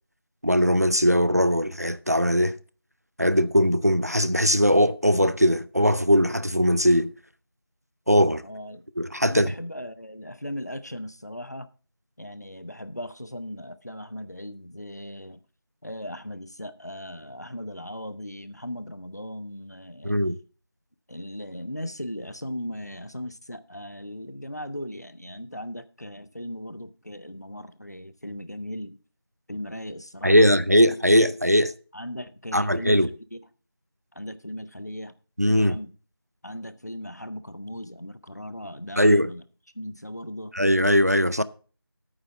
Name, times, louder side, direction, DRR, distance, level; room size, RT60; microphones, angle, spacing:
voice 1, 0.4-2.6 3.2-7.1 8.1-8.4 9.0-9.5 20.0-20.4 30.2-31.7 32.5-33.1 35.4-35.8 39.0-39.3 40.5-41.4, equal, 40° right, 0.4 m, -20 dB
voice 2, 8.4-8.8 9.3-11.7 12.2-15.4 15.8-20.2 21.1-29.0 29.5-30.5 31.9-33.4 34.1-35.1 35.6-35.9 36.4-39.4 39.7-40.5, equal, 45° left, 0.7 m, -37 dB
9.0 x 7.1 x 5.6 m
figure-of-eight pair, 175°, 13 cm